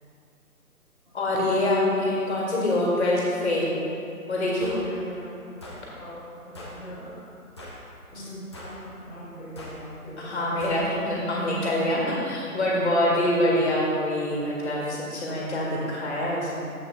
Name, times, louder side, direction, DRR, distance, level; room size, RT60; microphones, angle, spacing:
voice 1, 1.1-3.7 4.3-4.7 8.1-8.2 10.2-12.0 12.3-16.6, left 1 dB, 45° left, -4 dB, 1.9 m, -25 dB
sound 1, 4.6-4.8 5.6-5.8 6.5-6.8 7.6-7.8 8.5-8.8 9.6-9.8 10.6-10.8, left 1 dB, 20° left, 0.7 m, -41 dB
voice 2, 4.7-5.5 5.9-7.1 8.1-10.5 11.0-11.1 11.9-12.1, equal, 5° right, -16 dB, 2.0 m, -41 dB
11.0 x 7.8 x 2.4 m, 2.6 s
figure-of-eight pair, 150°, 45 cm